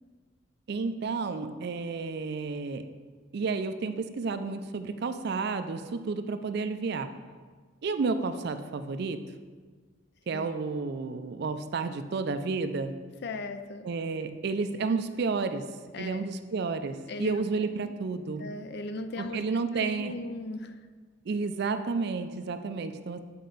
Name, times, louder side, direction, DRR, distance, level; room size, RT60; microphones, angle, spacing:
voice 1, 0.7-2.9 3.3-7.1 7.8-9.2 10.3-12.9 13.8-15.7 16.0-18.5 19.2-20.1 21.3-23.2, right 4 dB, 55° right, 10 dB, 0.4 m, -31 dB
voice 2, 13.2-13.9 15.9-16.2 17.1-17.4 17.8-18.0 18.4-19.4 19.7-20.8, left 2 dB, 55° left, 8 dB, 0.4 m, -37 dB
8.4 x 4.5 x 3.9 m, 1.5 s
head